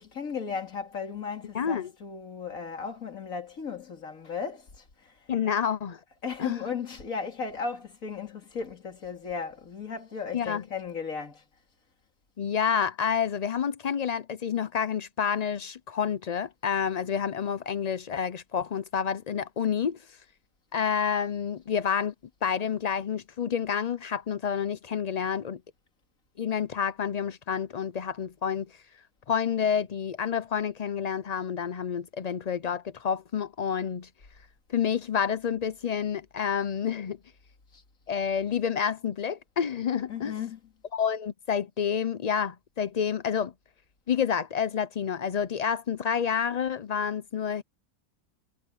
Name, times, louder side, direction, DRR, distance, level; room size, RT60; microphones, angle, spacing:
voice 1, 0.0-5.1 6.2-11.4 37.7-37.8 40.1-40.7, left 6 dB, 65° left, 2.9 m, -36 dB
voice 2, 1.5-1.9 5.3-6.0 6.4-6.6 10.3-10.6 12.4-20.0 20.7-22.1 22.4-25.6 26.4-28.7 29.3-34.1 34.7-37.2 38.1-40.3 40.9-43.5 44.1-47.6, left 7 dB, 90° left, 0.3 m, -29 dB
omnidirectional pair, 1.5 m